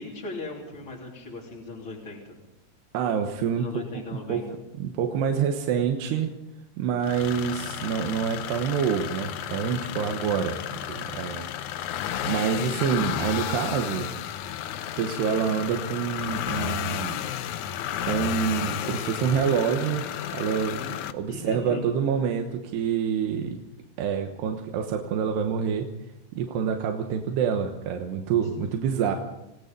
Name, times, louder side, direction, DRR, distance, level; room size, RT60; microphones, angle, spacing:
voice 1, 0.0-2.4 3.5-4.4 20.7-21.0 21.3-21.9 28.4-28.5, left 2 dB, 35° left, -5 dB, 3.6 m, -38 dB
voice 2, 2.9-3.8 4.3-4.5 4.8-6.3 6.8-10.6 10.9-11.5 12.2-14.1 15.0-17.2 18.0-20.1 20.3-20.8 21.1-23.6 24.0-25.9 26.3-29.2, right 7 dB, 90° right, 4 dB, 3.4 m, -27 dB
sound 1, 7.0-21.1, left 10 dB, 85° left, 1.7 m, -32 dB
28.5 x 18.0 x 5.3 m, 0.91 s
omnidirectional pair, 4.6 m